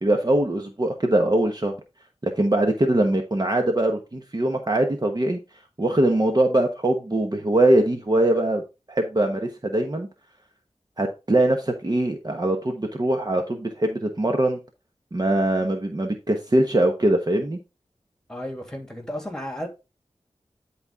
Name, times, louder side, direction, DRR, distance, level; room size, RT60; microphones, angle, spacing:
voice 1, 0.0-1.7 2.2-5.4 5.8-8.6 8.9-10.1 11.0-14.6 15.1-17.6, right 1 dB, 35° right, 1.2 m, -22 dB
voice 2, 18.3-19.7, equal, 5° left, 3.0 m, -33 dB
10.5 x 4.3 x 3.6 m
wide cardioid pair, 55°, 11 cm